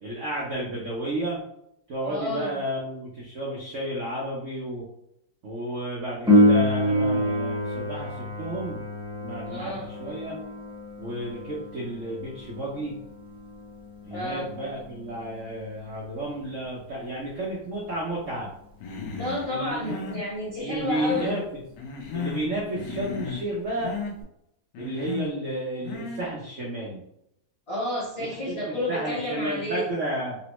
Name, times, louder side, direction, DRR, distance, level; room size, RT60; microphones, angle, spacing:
voice 1, 0.0-1.4 1.9-4.8 5.4-8.8 9.2-10.4 11.0-12.9 14.0-18.5 19.5-20.0 20.6-21.6 22.1-23.9 24.8-27.0 28.5-28.6 28.9-30.4, right 1 dB, 70° right, -4 dB, 0.7 m, -32 dB
voice 2, 2.0-2.6 9.5-9.9 14.1-14.5 19.2-21.4 27.7-29.9, left 1 dB, 40° left, -6 dB, 1.0 m, -30 dB
Piano, 6.3-16.7 24.2-24.3, left 1 dB, 10° right, 0.3 m, -27 dB
Human voice, 18.8-19.5 19.8-20.3 20.7-21.5 21.8-22.5 22.8-23.5 23.8-24.1 24.7-25.3 25.8-26.3, left 5 dB, 85° left, 1.5 m, -35 dB
4.0 x 2.1 x 2.9 m, 0.79 s
omnidirectional pair, 2.2 m